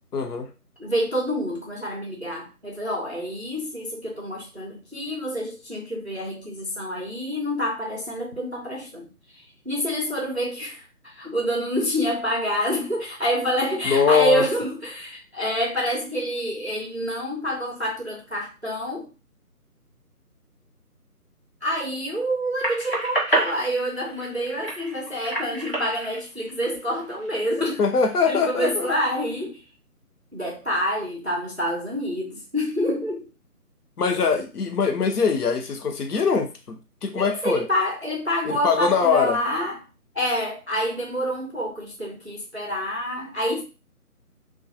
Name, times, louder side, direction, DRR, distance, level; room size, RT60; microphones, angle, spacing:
voice 1, 0.1-0.5 13.8-14.5 27.8-28.9 34.0-37.6 38.4-39.4, left 5 dB, 75° left, 5 dB, 0.7 m, -22 dB
voice 2, 0.8-9.1 9.3-19.1 21.6-27.8 28.3-29.6 30.3-33.3 37.1-39.8 40.1-43.6, equal, 50° right, -1 dB, 0.4 m, -27 dB
sound 1, 22.6-27.3 27.8-28.7, right 1 dB, 40° left, 0.6 m, -29 dB
2.3 x 2.2 x 2.6 m, 0.30 s
figure-of-eight pair, 180°, 46 cm